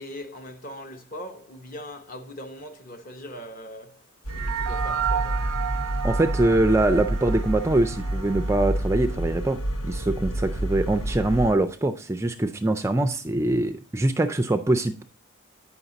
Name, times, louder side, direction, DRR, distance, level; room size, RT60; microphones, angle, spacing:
voice 1, 0.0-5.5, equal, 40° left, 0.9 m, -40 dB
sound 1, 4.2-11.5, right 1 dB, 70° left, 1.1 m, -29 dB
sound 2, 4.3-9.0, right 9 dB, 85° right, 0.4 m, -32 dB
voice 2, 6.0-9.6 9.8-15.0, right 2 dB, 10° right, 0.3 m, -23 dB
9.0 x 5.7 x 3.9 m
head